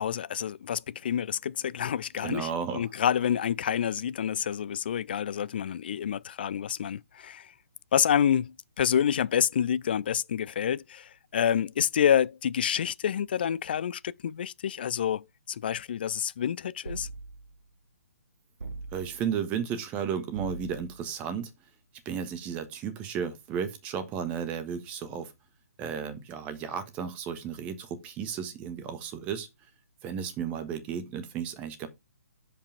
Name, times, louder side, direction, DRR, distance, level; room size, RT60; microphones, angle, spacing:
voice 1, 0.0-7.5 7.9-17.1, left 9 dB, 40° left, 0.3 m, -28 dB
voice 2, 2.2-2.9 18.9-21.5 22.0-25.3 25.8-29.5 30.0-31.9, right 7 dB, 20° right, 1.3 m, -33 dB
sound 1, 16.8-17.6 18.6-19.4 20.3-21.1, right 3 dB, 70° right, 0.7 m, -41 dB
6.8 x 5.3 x 4.9 m
figure-of-eight pair, 130°, 8 cm